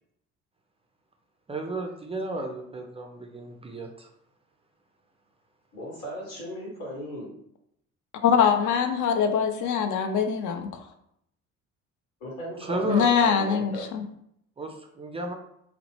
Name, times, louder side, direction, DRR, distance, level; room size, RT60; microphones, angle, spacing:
voice 1, 1.5-4.1 12.6-13.1 14.6-15.3, right 2 dB, 15° right, 3 dB, 0.3 m, -33 dB
voice 2, 5.7-7.3 12.2-13.9, equal, 80° left, -3 dB, 1.2 m, -36 dB
voice 3, 8.2-10.8 12.9-14.0, left 7 dB, 50° left, 6 dB, 0.5 m, -23 dB
2.8 x 2.0 x 3.0 m, 0.74 s
hypercardioid pair, 55°, 39 cm